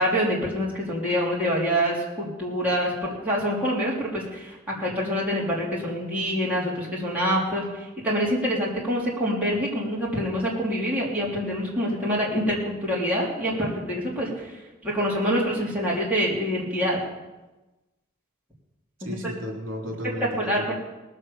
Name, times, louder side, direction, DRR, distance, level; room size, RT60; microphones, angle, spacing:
voice 1, 0.0-7.6 8.0-14.5 14.8-17.0 19.0-19.2 20.4-20.7, equal, 10° right, -6 dB, 3.5 m, -26 dB
voice 2, 19.0-20.7, equal, 70° right, 0 dB, 3.2 m, -34 dB
19.0 x 7.7 x 7.1 m, 1.1 s
head